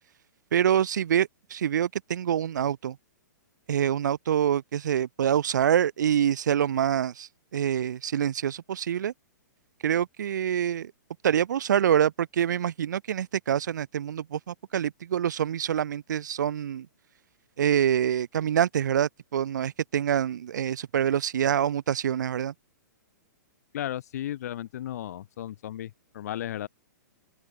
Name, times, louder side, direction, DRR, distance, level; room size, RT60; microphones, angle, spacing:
voice 1, 0.5-3.0 3.7-9.1 9.8-10.9 11.2-16.9 17.6-22.5, right 9 dB, 75° right, 1.1 m, -26 dB
voice 2, 23.7-26.7, left 12 dB, 55° left, 7.8 m, -35 dB
open air
hypercardioid pair, 160°, 10 cm